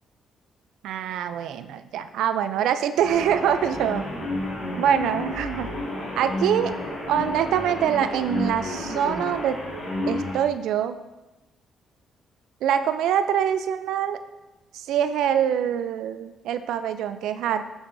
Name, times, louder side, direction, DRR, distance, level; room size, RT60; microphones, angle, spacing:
voice 1, 0.8-4.0 4.8-5.7 6.2-6.7 7.1-9.6 10.1-11.0 12.6-14.2 14.7-17.6, right 9 dB, 85° right, 10 dB, 0.4 m, -24 dB
sound 1, 3.0-10.4, left 1 dB, 65° left, 2.2 m, -31 dB
6.4 x 6.2 x 2.6 m, 1.0 s
cardioid pair, 90°, 0 cm